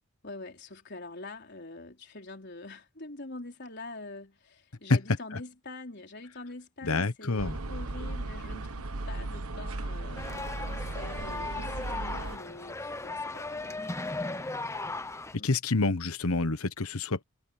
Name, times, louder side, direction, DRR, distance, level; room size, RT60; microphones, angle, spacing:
voice 1, 0.2-14.6 15.3-15.5, left 2 dB, 50° left, 4.3 m, -45 dB
voice 2, 6.8-7.6 15.4-17.2, left 3 dB, 85° left, 1.2 m, -27 dB
sound 1, 7.4-12.4, right 2 dB, 85° right, 1.2 m, -36 dB
sound 2, 10.2-15.4, left 2 dB, 15° left, 0.8 m, -37 dB
head